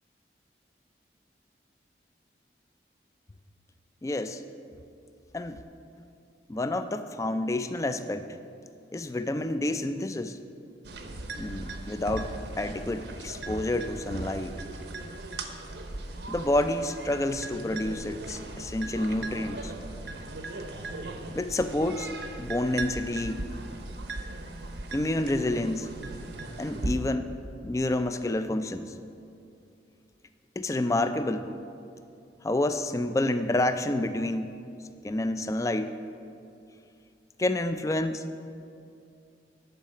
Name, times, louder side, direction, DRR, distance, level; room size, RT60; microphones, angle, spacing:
voice 1, 4.0-4.4 5.3-5.6 6.5-8.2 8.9-10.4 11.4-14.5 16.3-19.7 21.3-22.1 22.4-23.4 24.9-25.9 26.6-27.4 27.6-28.9 30.6-31.5 32.4-34.5 35.0-36.0 37.4-38.2, left 1 dB, 20° left, 10 dB, 0.3 m, -29 dB
sound 1, 10.8-27.0, right 2 dB, 75° right, 0.8 m, -38 dB
10.5 x 4.8 x 6.6 m, 2.5 s
head